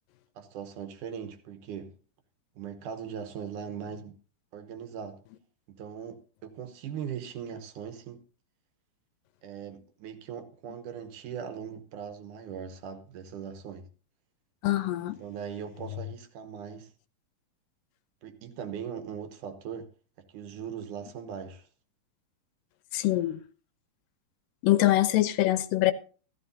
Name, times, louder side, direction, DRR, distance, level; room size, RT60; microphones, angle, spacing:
voice 1, 0.4-1.9 2.6-4.2 4.5-5.2 5.7-8.2 9.4-13.9 15.1-16.9 18.2-19.9 20.2-21.7, right 7 dB, 70° right, 2.4 m, -40 dB
voice 2, 14.6-15.2 22.9-23.4 24.6-25.9, left 15 dB, 80° left, 2.2 m, -24 dB
14.0 x 14.0 x 2.7 m
omnidirectional pair, 4.1 m